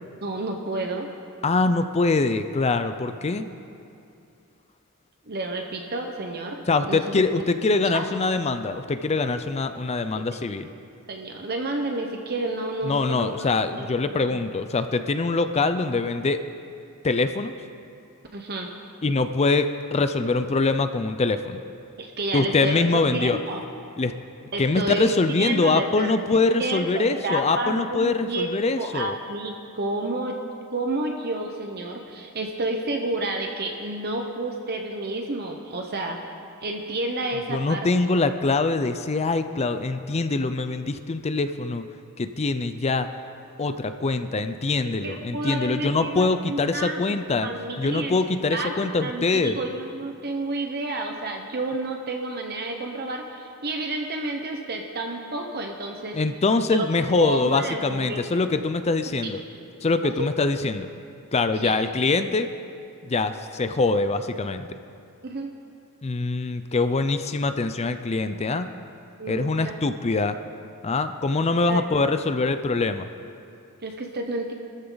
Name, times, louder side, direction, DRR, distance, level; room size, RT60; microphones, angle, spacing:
voice 1, 0.2-1.1 5.3-7.0 7.9-8.1 10.3-10.4 11.1-13.5 13.8-13.9 14.1-14.4 18.3-18.7 22.0-22.8 23.1-23.6 24.5-26.1 26.6-28.5 28.8-30.4 30.7-36.2 36.6-37.9 44.9-48.2 48.5-56.2 56.7-56.9 57.2-58.2 60.0-60.3 61.6-61.8 65.2-65.5 69.2-69.9 71.7-71.8 73.8-74.5, right 2 dB, 45° right, 3 dB, 1.0 m, -30 dB
voice 2, 1.4-3.4 6.7-10.7 12.8-16.4 17.0-17.5 19.0-21.6 22.3-23.4 24.0-24.1 24.6-29.2 37.5-41.8 42.2-43.1 43.6-47.5 47.8-49.6 56.1-59.4 59.8-60.9 61.3-62.5 63.1-64.7 66.0-68.7 69.3-70.4 70.8-73.1, left 3 dB, 30° left, 9 dB, 0.5 m, -24 dB
23.0 x 14.0 x 4.0 m, 2.5 s
head